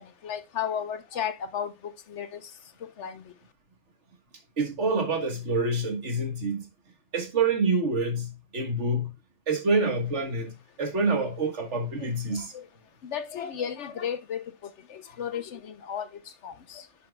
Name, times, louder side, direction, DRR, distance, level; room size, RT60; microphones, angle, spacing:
voice 1, 0.0-2.4 3.0-3.2 12.0-12.1 12.3-12.6 13.0-14.4 14.9-16.1 16.4-16.8, left 8 dB, 80° left, 1.2 m, -34 dB
voice 2, 4.6-6.7 7.1-9.1 9.5-12.5, right 3 dB, 80° right, 1.9 m, -27 dB
10.5 x 6.0 x 2.3 m
omnidirectional pair, 1.2 m